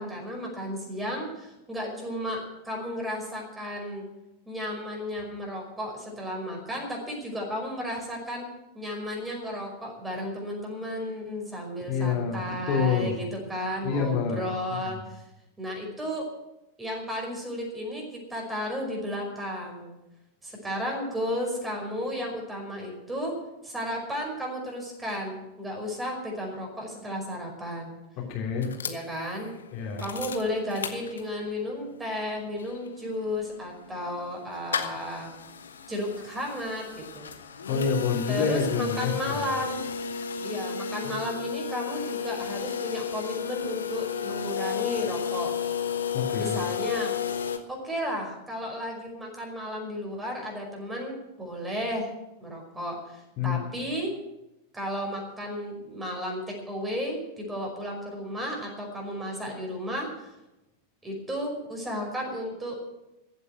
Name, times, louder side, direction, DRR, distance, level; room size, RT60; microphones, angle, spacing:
voice 1, 0.0-4.1 4.5-8.5 8.7-15.2 15.6-16.3 16.8-19.9 20.4-23.4 23.6-27.9 28.8-29.5 30.0-35.3 35.9-37.3 38.3-39.8 40.4-45.5 46.4-47.1 47.7-52.1 52.4-54.1 54.7-60.3 61.0-62.8, equal, 10° right, 0 dB, 5.3 m, -33 dB
voice 2, 11.9-13.1 13.8-14.4 14.8-15.0 28.3-28.7 29.7-30.0 37.7-39.4 41.0-41.1 46.1-46.6 53.4-53.7, left 6 dB, 40° left, -3 dB, 3.3 m, -27 dB
sound 1, 28.6-31.6 32.0-32.1 32.3-47.6, left 7 dB, 70° left, 1.2 m, -33 dB
15.0 x 8.2 x 9.3 m, 0.95 s
figure-of-eight pair, 90°, 0 cm